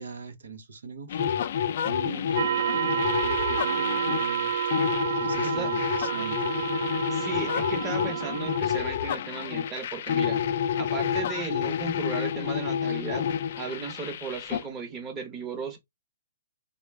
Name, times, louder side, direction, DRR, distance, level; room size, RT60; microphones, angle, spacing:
voice 1, 0.0-1.3 1.8-4.6 5.2-6.6, right 5 dB, 80° right, 0.8 m, -41 dB
sound 1, 1.1-14.6, left 8 dB, 50° left, 0.4 m, -29 dB
sound 2, 2.4-8.6, right 9 dB, 60° right, 0.4 m, -29 dB
voice 2, 7.1-13.3 13.6-15.8, right 4 dB, 15° right, 0.9 m, -36 dB
3.5 x 2.3 x 3.3 m
hypercardioid pair, 155°, 0 cm